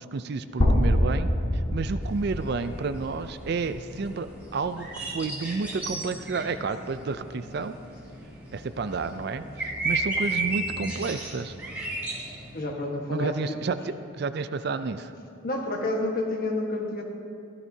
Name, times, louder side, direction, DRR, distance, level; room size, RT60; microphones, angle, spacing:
voice 1, 0.0-1.3 1.7-7.7 8.5-11.5 13.1-15.1, right 4 dB, 55° right, 11 dB, 0.4 m, -31 dB
sound 1, 0.6-4.5, equal, 80° left, 1.6 m, -26 dB
sound 2, 2.0-12.6, right 2 dB, 10° right, 2.4 m, -35 dB
voice 2, 12.5-13.6 15.4-17.0, left 2 dB, 45° left, 1 dB, 1.4 m, -29 dB
16.0 x 13.0 x 2.8 m, 2.4 s
head